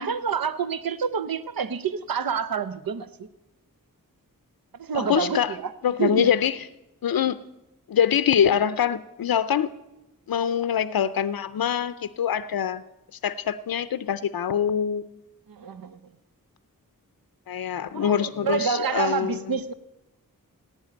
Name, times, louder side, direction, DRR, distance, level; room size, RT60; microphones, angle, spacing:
voice 1, 0.0-3.3 4.8-5.7 6.0-6.3 15.5-16.0 17.9-19.7, right 7 dB, 80° right, 0.7 m, -28 dB
voice 2, 4.9-5.6 5.8-6.7 7.0-7.4 7.9-9.7 10.3-12.8 13.2-15.1 17.5-19.6, left 8 dB, 85° left, 0.5 m, -24 dB
16.5 x 9.5 x 9.2 m
wide cardioid pair, 55°, 34 cm